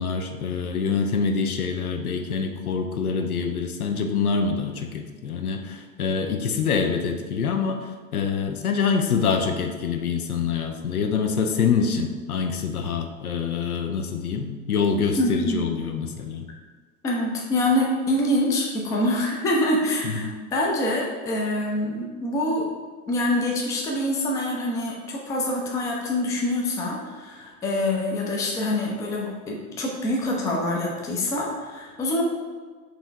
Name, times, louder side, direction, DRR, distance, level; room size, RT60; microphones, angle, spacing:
voice 1, 0.0-7.8 8.1-16.5 20.1-20.3, left 5 dB, 75° left, 5 dB, 0.6 m, -25 dB
voice 2, 15.2-15.6 17.0-22.7 23.1-32.2, left 1 dB, 10° left, -1 dB, 0.4 m, -25 dB
4.1 x 3.0 x 3.4 m, 1.4 s
figure-of-eight pair, 80°, 44 cm